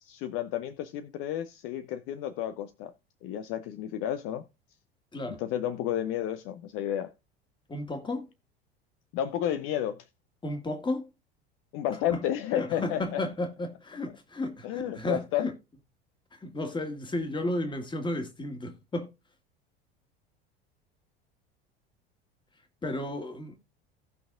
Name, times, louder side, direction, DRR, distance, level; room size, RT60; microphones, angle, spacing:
voice 1, 0.0-2.9 3.2-4.4 5.2-7.1 9.1-10.1 11.7-13.2 14.6-15.5, left 11 dB, 45° left, 0.8 m, -31 dB
voice 2, 5.1-5.4 7.7-8.3 10.4-11.1 11.9-12.2 12.5-15.5 16.3-19.1 22.8-23.6, left 1 dB, 15° left, 2.0 m, -33 dB
17.5 x 5.9 x 2.5 m
figure-of-eight pair, 75°, 31 cm